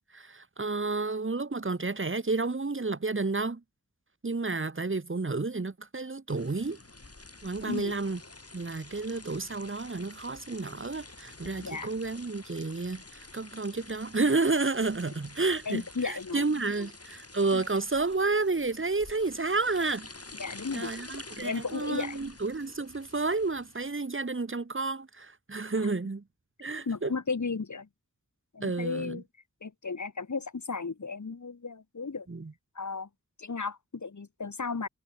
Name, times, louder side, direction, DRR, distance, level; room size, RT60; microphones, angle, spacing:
voice 1, 0.1-3.6 4.2-6.8 7.4-8.2 8.5-20.1 20.7-26.2 26.6-27.1 28.6-29.2 32.3-32.5, right 3 dB, 40° right, 1.4 m, -31 dB
sound 1, 6.3-24.0, left 2 dB, 50° left, 5.4 m, -49 dB
voice 2, 11.6-11.9 15.7-16.4 16.8-16.9 17.5-17.6 20.4-20.9 21.4-22.3 26.8-27.9 28.5-29.2 29.6-32.3 32.7-33.1 33.4-34.9, left 4 dB, 70° left, 1.6 m, -34 dB
wide cardioid pair, 50°, 30 cm